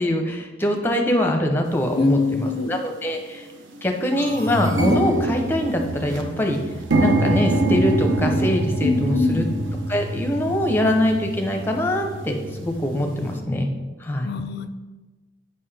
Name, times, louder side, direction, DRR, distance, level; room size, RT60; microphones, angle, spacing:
voice 1, 0.0-3.5 3.8-6.6 7.0-9.4 9.9-13.7 14.0-14.3, left 1 dB, 10° left, 3 dB, 0.6 m, -23 dB
sound 1, 1.8-1.9 2.7-2.9 3.3-3.4 3.7-13.4, right 1 dB, 70° right, 0.8 m, -25 dB
voice 2, 2.0-2.8 8.8-9.5 14.2-14.7, left 4 dB, 50° left, 10 dB, 0.4 m, -23 dB
7.6 x 5.4 x 3.4 m, 1.2 s
head